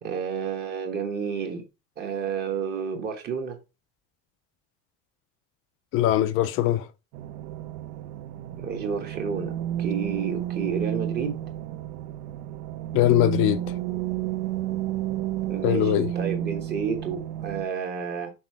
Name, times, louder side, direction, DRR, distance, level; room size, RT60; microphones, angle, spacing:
voice 1, 0.0-1.6 2.0-3.6 8.6-9.5 9.8-11.4 15.5-18.3, right 6 dB, 30° right, 1.1 m, -30 dB
voice 2, 5.9-6.8 12.9-13.6 15.6-16.1, left 12 dB, 45° left, 0.4 m, -21 dB
sound 1, 7.1-17.7, right 12 dB, 80° right, 0.8 m, -31 dB
6.0 x 4.2 x 4.6 m
cardioid pair, 175°, 31 cm